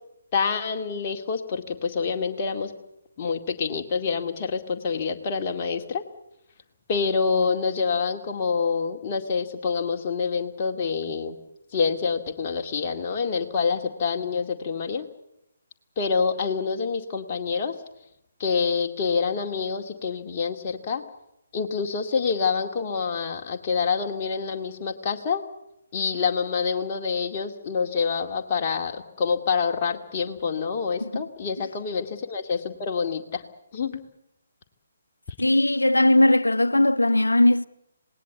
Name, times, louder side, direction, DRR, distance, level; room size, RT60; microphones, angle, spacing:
voice 1, 0.3-2.7 3.2-6.0 6.9-11.4 11.7-15.1 16.0-17.7 18.4-21.0 21.5-25.4 25.9-33.4 33.7-34.0, left 5 dB, 30° left, 2.2 m, -27 dB
voice 2, 35.4-37.7, left 1 dB, 75° left, 0.9 m, -19 dB
26.5 x 19.0 x 8.2 m
figure-of-eight pair, 140°, 0 cm